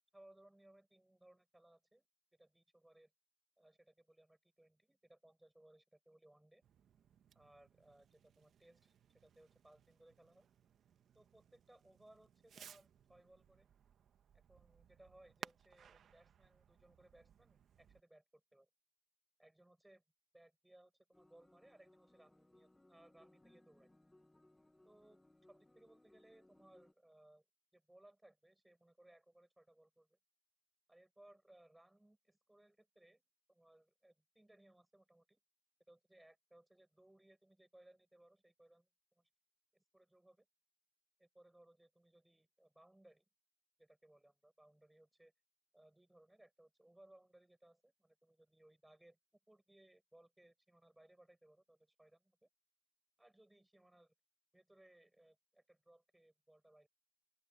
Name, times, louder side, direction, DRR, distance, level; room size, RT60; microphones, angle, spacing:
voice 1, 0.1-2.1 2.3-3.1 3.6-6.6 7.3-10.5 11.1-13.7 14.5-18.7 19.4-20.0 20.3-23.9 24.8-27.4 27.7-30.2 30.9-33.2 33.5-35.4 35.9-39.3 39.7-40.5 41.2-43.2 43.8-45.3 45.7-49.2 49.5-52.5 53.2-54.1 54.5-56.9, right 1 dB, 10° right, 7.6 m, -66 dB
Fireworks, 6.6-18.0, right 8 dB, 65° right, 1.4 m, -60 dB
sound 1, 21.1-26.9, left 1 dB, 10° left, 1.6 m, -68 dB
open air
cardioid pair, 90°, 0 cm